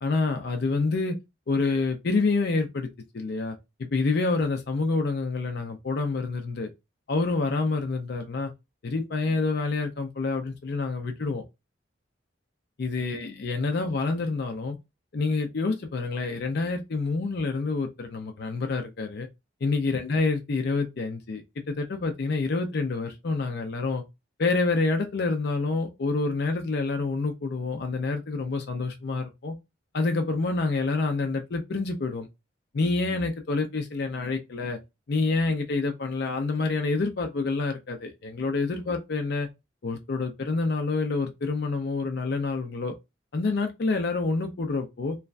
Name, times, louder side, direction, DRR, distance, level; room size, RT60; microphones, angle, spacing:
voice 1, 0.0-1.2 1.5-2.9 3.1-3.6 3.9-6.7 7.1-8.5 8.8-11.4 12.8-14.8 15.1-19.3 19.6-24.0 24.4-29.6 29.9-32.3 32.7-34.8 35.1-39.5 39.8-42.9 43.3-45.2, left 3 dB, 55° left, 0.5 m, -27 dB
3.1 x 2.2 x 2.4 m
head